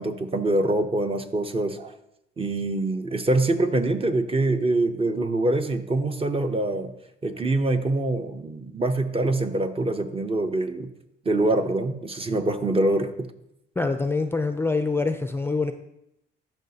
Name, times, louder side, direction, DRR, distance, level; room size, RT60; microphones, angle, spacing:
voice 1, 0.0-1.9 2.4-6.9 7.2-10.9 11.2-13.3, right 2 dB, 30° right, 7 dB, 0.7 m, -24 dB
voice 2, 13.8-15.7, left 3 dB, 10° left, 7 dB, 0.4 m, -25 dB
11.5 x 5.7 x 2.8 m, 0.81 s
cardioid pair, 90°, 20 cm